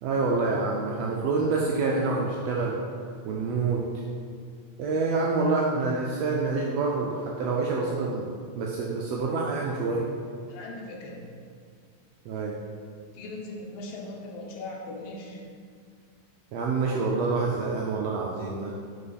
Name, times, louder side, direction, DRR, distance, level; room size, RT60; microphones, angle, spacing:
voice 1, 0.0-2.8 3.3-3.8 4.8-10.1 12.3-12.6 16.5-18.7, right 3 dB, 80° right, -2 dB, 1.5 m, -27 dB
voice 2, 10.5-11.4 13.1-15.4, left 2 dB, 70° left, -2 dB, 1.7 m, -39 dB
5.3 x 4.6 x 4.1 m, 2.1 s
omnidirectional pair, 3.3 m